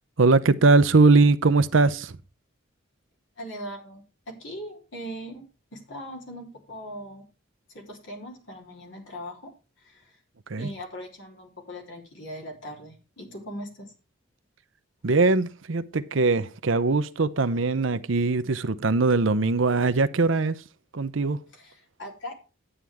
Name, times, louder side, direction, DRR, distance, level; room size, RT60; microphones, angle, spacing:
voice 1, 0.2-2.1 10.5-10.7 15.0-20.6 20.9-21.4, right 3 dB, 75° right, 0.7 m, -21 dB
voice 2, 3.4-5.4 5.7-7.3 7.7-10.2 10.6-13.9 21.5-22.3, equal, 65° left, 3.5 m, -40 dB
11.0 x 9.0 x 3.5 m
head